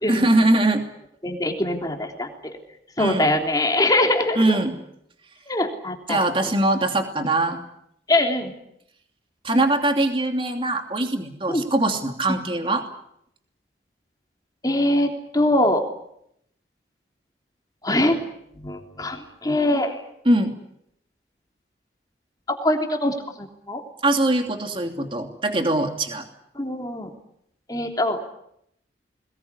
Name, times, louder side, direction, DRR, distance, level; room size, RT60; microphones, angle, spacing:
voice 1, 0.1-0.8 3.0-3.3 4.3-4.7 6.1-7.6 9.4-12.8 20.2-20.5 24.0-26.3, right 2 dB, 30° right, 4 dB, 2.9 m, -22 dB
voice 2, 1.2-2.3 3.0-4.6 5.5-6.5 8.1-8.5 11.5-11.6 14.6-15.1 15.3-15.8 17.8-18.2 18.6-20.0 22.6-23.8 26.6-27.1 27.7-28.2, left 1 dB, 20° left, 2 dB, 3.4 m, -23 dB
22.5 x 21.0 x 10.0 m, 0.75 s
head